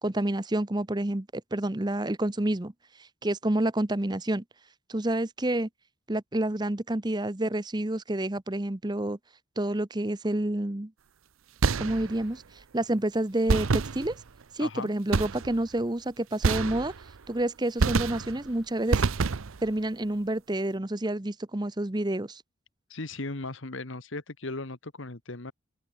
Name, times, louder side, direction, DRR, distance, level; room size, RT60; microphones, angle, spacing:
voice 1, 0.0-2.7 3.2-4.4 4.9-5.7 6.1-9.2 9.6-10.9 11.8-12.4 12.7-14.2 14.5-16.9 17.3-19.0 19.6-22.4, right 1 dB, 20° right, 0.8 m, -29 dB
sound 1, 11.6-12.3 13.5-14.4 15.1-15.7 16.4-17.2 17.8-18.5 18.9-19.7, right 4 dB, 80° right, 0.7 m, -27 dB
voice 2, 14.6-14.9 22.9-25.5, left 2 dB, 65° left, 1.6 m, -37 dB
open air
head